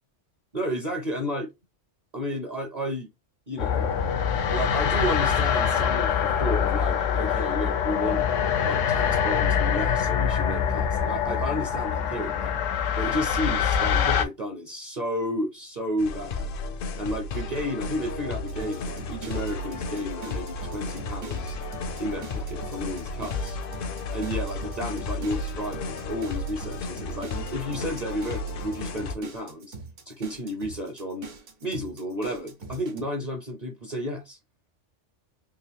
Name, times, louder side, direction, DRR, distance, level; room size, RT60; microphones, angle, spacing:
voice 1, 0.5-1.5 2.1-3.1 3.5-3.9 4.5-8.2 8.6-12.5 12.9-16.5 17.0-21.6 22.0-23.6 24.1-29.8 30.1-31.3 31.6-34.4, equal, 40° right, 0.7 m, -32 dB
sound 1, 3.6-14.2, left 7 dB, 85° left, 0.9 m, -24 dB
sound 2, 16.0-29.1, left 3 dB, 60° left, 0.6 m, -33 dB
sound 3, 18.5-33.0, right 4 dB, 75° right, 1.3 m, -42 dB
3.5 x 2.5 x 3.4 m
omnidirectional pair, 1.3 m